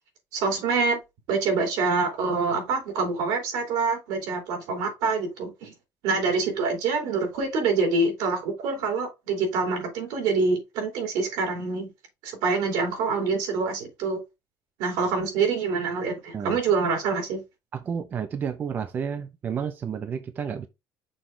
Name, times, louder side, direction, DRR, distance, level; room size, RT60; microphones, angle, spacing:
voice 1, 0.3-1.0 1.3-5.7 6.0-11.9 12.2-14.2 14.8-17.4, right 4 dB, 75° right, 3.2 m, -26 dB
voice 2, 17.7-20.7, right 7 dB, 25° right, 0.4 m, -31 dB
6.3 x 4.5 x 3.8 m
cardioid pair, 175°, 7 cm